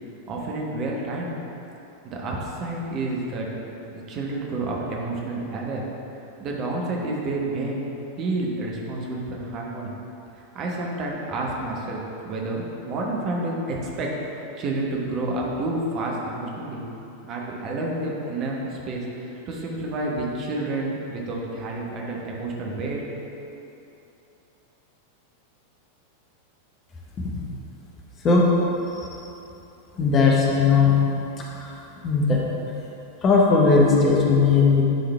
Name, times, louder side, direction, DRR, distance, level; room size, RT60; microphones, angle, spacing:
voice 1, 0.3-1.3 2.0-3.5 4.1-5.9 6.4-7.8 8.2-9.9 10.3-16.8 17.2-23.0, right 2 dB, 35° right, -2 dB, 1.0 m, -29 dB
voice 2, 30.0-30.9 31.6-31.7 32.0-32.4 33.2-34.8, left 4 dB, 25° left, -3 dB, 1.0 m, -18 dB
10.0 x 3.8 x 3.4 m, 2.9 s
figure-of-eight pair, 90°, 0 cm